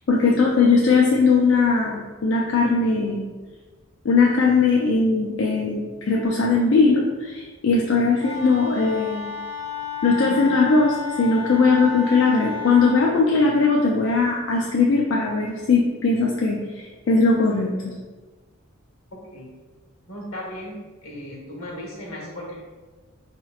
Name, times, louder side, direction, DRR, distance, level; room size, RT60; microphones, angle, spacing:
voice 1, 0.1-3.2 4.0-9.4 10.0-17.9, left 4 dB, 60° left, -2 dB, 0.4 m, -19 dB
Wind instrument woodwind instrument, 8.2-13.0, left 6 dB, 60° right, 0.7 m, -32 dB
voice 2, 19.1-19.5 20.1-22.6, left 1 dB, 80° left, -3 dB, 1.2 m, -36 dB
4.1 x 2.9 x 2.4 m, 1.3 s
head